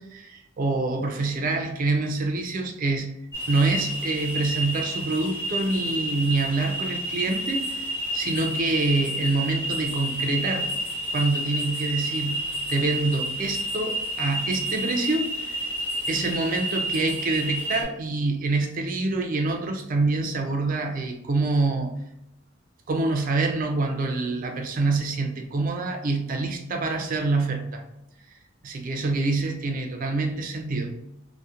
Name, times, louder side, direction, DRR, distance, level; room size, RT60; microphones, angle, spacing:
voice 1, 0.0-3.1 3.5-10.7 11.1-12.4 12.7-15.6 16.1-21.9 22.9-27.8 28.6-30.9, right 3 dB, 45° right, 4 dB, 0.4 m, -26 dB
sound 1, 3.3-17.8, right 1 dB, 10° left, 0.9 m, -30 dB
2.7 x 2.0 x 2.3 m, 0.85 s
head